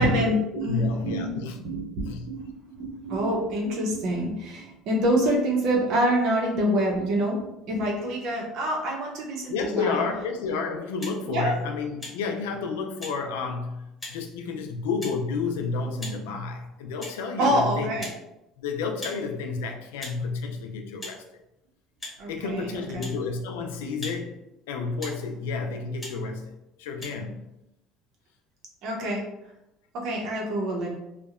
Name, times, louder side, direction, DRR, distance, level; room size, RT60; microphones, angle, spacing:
voice 1, 0.0-10.0 11.3-11.5 17.4-18.1 22.2-23.1 28.8-29.2 29.9-30.9, equal, 65° right, 0 dB, 0.7 m, -26 dB
voice 2, 0.5-1.6 2.0-2.3 9.5-18.0 18.6-21.2 22.3-24.4 24.7-27.4, left 4 dB, 85° left, 4 dB, 0.3 m, -30 dB
sound 1, 11.0-11.2 12.0-12.2 13.0-13.2 14.0-14.2 15.0-15.1 16.0-16.2 17.0-17.2 18.0-18.2 19.0-19.2 20.0-20.2 21.0-21.2 22.0-22.2 23.0-23.2 24.0-24.2 25.0-25.2 26.0-26.1 27.0-27.1, left 1 dB, 15° left, 1.2 m, -38 dB
2.7 x 2.1 x 2.4 m, 0.90 s
supercardioid pair, 85°, 0 cm